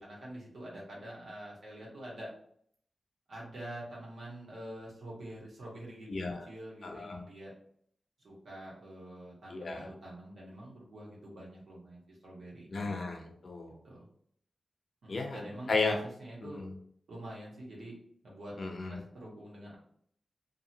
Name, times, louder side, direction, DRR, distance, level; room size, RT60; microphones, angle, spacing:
voice 1, 0.0-2.3 3.3-7.5 8.2-13.0 13.8-14.1 15.0-16.6 17.1-17.9 18.2-18.5 18.9-19.7, right 1 dB, 85° right, -4 dB, 1.2 m, -46 dB
voice 2, 6.1-6.5 6.8-7.2 9.5-9.9 12.7-13.8 15.1-15.4 15.7-16.0 16.4-16.7 18.6-19.0, left 3 dB, 55° left, 2 dB, 0.6 m, -34 dB
2.7 x 2.4 x 2.8 m, 0.64 s
wide cardioid pair, 135°, 0 cm